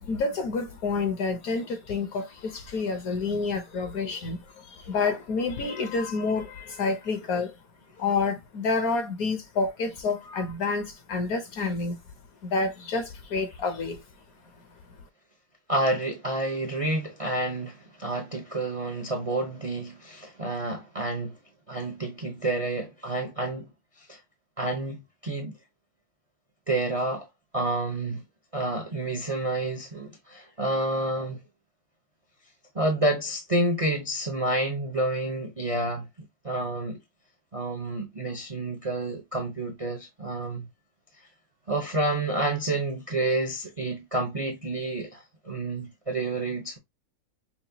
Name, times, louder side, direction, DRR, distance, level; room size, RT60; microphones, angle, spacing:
voice 1, 0.0-7.5 8.0-12.0 12.4-14.0, left 4 dB, 60° left, 1.1 m, -29 dB
voice 2, 15.7-21.4 21.7-23.7 24.0-24.2 24.6-25.5 26.7-27.3 27.5-28.2 28.5-31.4 32.7-36.1 36.4-37.0 37.5-40.7 41.7-46.8, right 2 dB, 45° right, 0.4 m, -29 dB
5.8 x 2.2 x 2.7 m
omnidirectional pair, 2.0 m